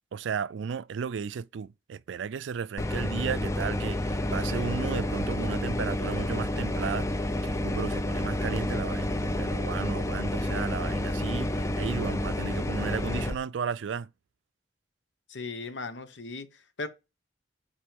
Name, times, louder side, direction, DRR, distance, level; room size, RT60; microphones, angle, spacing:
voice 1, 0.1-14.1, right 6 dB, 85° right, 0.4 m, -34 dB
sound 1, 2.8-13.3, left 1 dB, 15° left, 0.5 m, -29 dB
voice 2, 15.3-16.5 16.8-16.9, left 3 dB, 80° left, 1.1 m, -36 dB
7.5 x 4.4 x 5.2 m
head